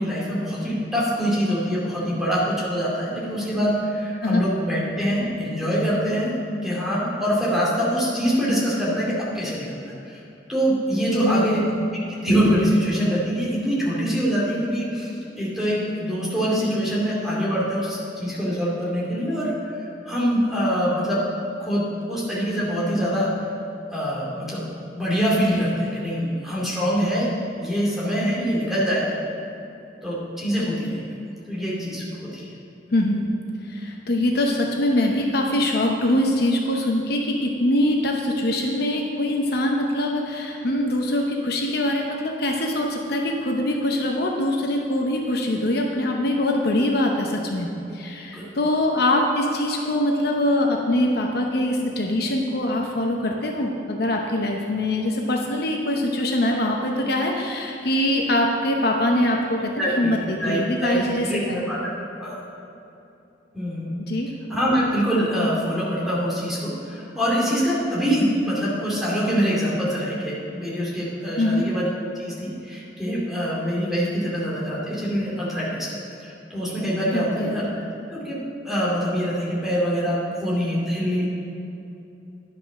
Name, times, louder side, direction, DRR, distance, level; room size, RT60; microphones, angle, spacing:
voice 1, 0.0-6.3 6.6-10.2 10.5-11.6 12.1-19.5 20.1-21.2 21.6-23.3 23.9-24.6 24.9-29.2 30.0-31.0 31.5-32.0 32.3-32.5 48.3-48.5 59.8-60.1 60.4-61.9 62.2-62.4 63.5-64.0 64.5-71.8 72.1-75.9 76.2-77.8 78.1-78.4 78.6-81.3, equal, ahead, -7 dB, 2.4 m, -24 dB
voice 2, 11.1-11.9 32.9-33.3 33.6-61.6 64.0-64.3 71.4-71.7 77.1-77.6, left 1 dB, 60° left, 1 dB, 0.8 m, -23 dB
10.5 x 5.9 x 6.1 m, 2.9 s
head